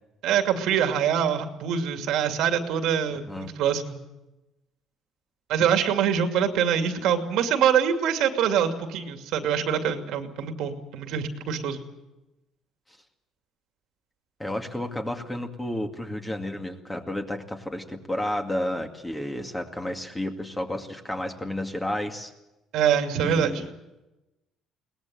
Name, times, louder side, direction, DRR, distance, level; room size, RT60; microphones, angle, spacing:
voice 1, 0.2-4.0 5.5-11.8 22.7-23.6, right 8 dB, 75° right, 6 dB, 2.5 m, -24 dB
voice 2, 14.4-22.3 23.2-23.7, left 1 dB, 10° left, 4 dB, 2.2 m, -31 dB
22.5 x 19.5 x 7.8 m, 0.99 s
cardioid pair, 145°, 0 cm